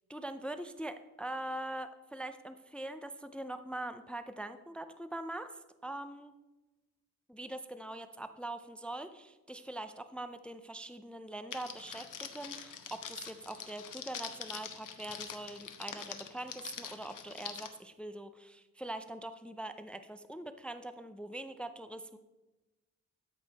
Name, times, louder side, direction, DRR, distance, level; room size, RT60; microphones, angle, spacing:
voice 1, 0.1-6.3 7.3-22.2, right 1 dB, 5° left, 10 dB, 0.4 m, -43 dB
Crackle, 11.5-17.7, left 7 dB, 75° left, 1.0 m, -44 dB
13.0 x 5.3 x 4.0 m, 1.1 s
cardioid pair, 85°, 32 cm